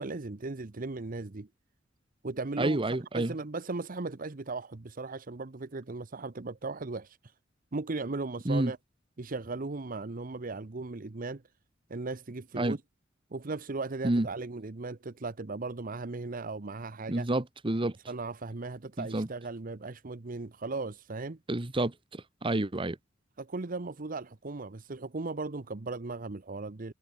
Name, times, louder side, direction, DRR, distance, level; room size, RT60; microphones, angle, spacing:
voice 1, 0.0-1.5 2.2-2.8 3.1-7.3 7.7-8.8 9.2-11.4 11.9-12.8 13.3-17.3 18.1-21.4 23.4-26.9, right 3 dB, 45° right, 0.9 m, -37 dB
voice 2, 2.6-3.3 8.4-8.7 12.6-12.8 14.0-14.3 17.1-17.9 19.0-19.3 21.5-23.0, right 1 dB, 30° right, 1.0 m, -29 dB
head